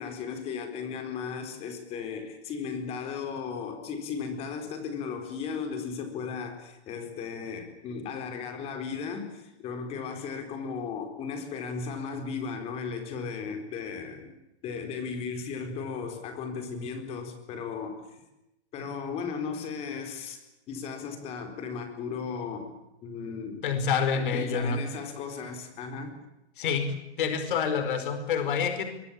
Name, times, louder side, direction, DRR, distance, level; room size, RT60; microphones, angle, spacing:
voice 1, 0.0-14.3 14.6-18.2 18.7-22.7 23.0-23.7 24.2-26.2, left 5 dB, 20° left, 7 dB, 4.1 m, -36 dB
voice 2, 23.6-24.8 26.6-26.9 27.2-28.8, left 6 dB, 50° left, 8 dB, 4.9 m, -27 dB
23.5 x 23.5 x 8.6 m, 0.89 s
hypercardioid pair, 170°, 33 cm